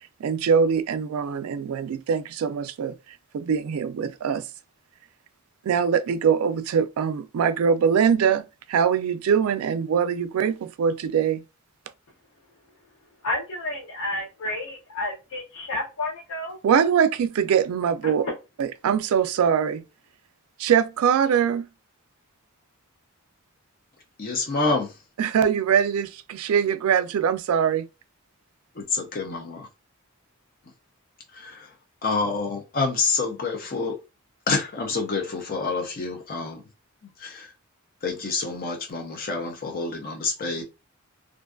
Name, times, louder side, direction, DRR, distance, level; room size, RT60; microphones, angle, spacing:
voice 1, 0.2-2.9 3.3-4.4 5.6-8.4 8.7-11.4 16.6-18.3 18.6-19.8 20.6-21.7 25.2-27.9, right 7 dB, 80° right, 0.3 m, -22 dB
voice 2, 13.2-16.6 18.0-18.3, left 2 dB, 80° left, 0.7 m, -31 dB
voice 3, 24.2-25.0 28.7-29.7 31.3-31.8 32.0-34.0 34.5-36.6 37.0-37.5 38.0-40.6, left 4 dB, 45° left, 0.5 m, -28 dB
2.5 x 2.3 x 2.4 m
head